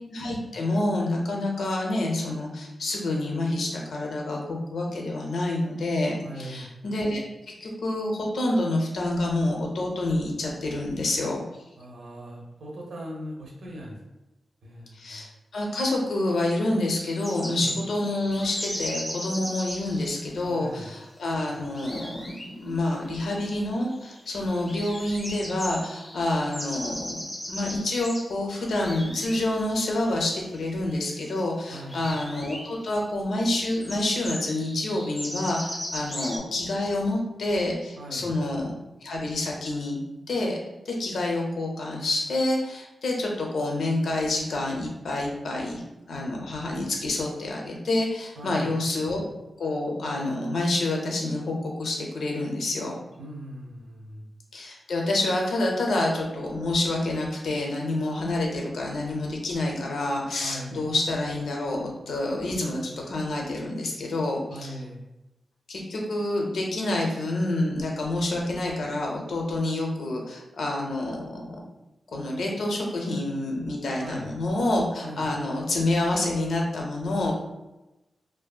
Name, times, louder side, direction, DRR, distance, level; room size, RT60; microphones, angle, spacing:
voice 1, 0.1-11.4 14.9-15.3 15.5-38.7 39.0-40.0 40.3-40.6 40.9-45.8 46.1-49.2 49.6-53.0 54.5-64.7 65.7-71.6 72.1-77.3, left 2 dB, 85° left, 0 dB, 0.5 m, -28 dB
voice 2, 6.2-6.7 11.8-14.0 14.6-15.2 17.4-17.7 20.4-20.9 31.7-32.1 38.0-38.3 48.4-48.7 53.2-54.3 60.4-60.8 64.5-65.0 74.0-74.3 75.0-75.3, equal, 75° right, -2 dB, 0.6 m, -40 dB
sound 1, 17.0-20.3 21.2-21.3 21.5-22.5 22.8-22.9 23.2-23.3 23.7-24.3 24.7-28.3 28.6-29.4 29.7-30.6 30.9-31.4 31.9-32.6 33.1-33.2 33.4-36.4, equal, 10° left, 0.5 m, -37 dB
2.7 x 2.4 x 2.2 m, 0.99 s
wide cardioid pair, 175°, 0 cm